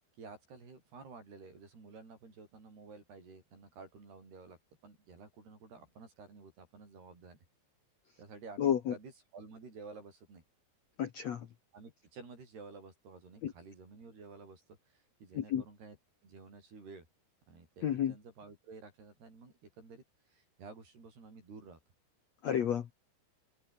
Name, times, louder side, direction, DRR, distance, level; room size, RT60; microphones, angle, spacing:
voice 1, 0.2-4.6 4.8-7.4 8.2-10.4 11.7-16.0 16.2-17.1 17.5-21.8, right 4 dB, 70° right, 10.0 m, -52 dB
voice 2, 8.6-8.9 11.0-11.5 13.4-13.5 15.3-15.6 17.8-18.1 22.4-22.9, left 9 dB, 60° left, 1.9 m, -31 dB
omnidirectional pair, 4.8 m